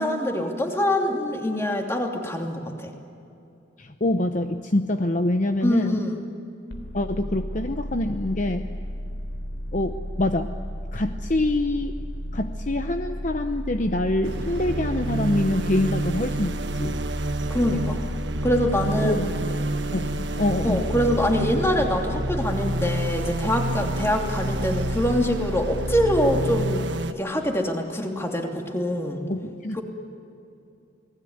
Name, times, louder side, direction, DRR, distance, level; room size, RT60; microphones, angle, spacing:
voice 1, 0.0-2.9 5.6-6.2 17.5-18.0 18.4-19.2 20.6-29.2 29.7-29.8, left 1 dB, 15° left, 2 dB, 2.7 m, -24 dB
voice 2, 3.8-6.0 6.9-8.7 9.7-10.5 10.9-11.9 12.3-17.0 19.0-19.3 19.9-20.8 29.3-29.8, left 1 dB, 40° left, 7 dB, 0.9 m, -25 dB
sound 1, 6.7-26.4, equal, 70° left, 3.5 m, -33 dB
sound 2, 14.2-27.1, right 2 dB, 65° right, 1.4 m, -29 dB
29.0 x 20.0 x 9.6 m, 2.7 s
head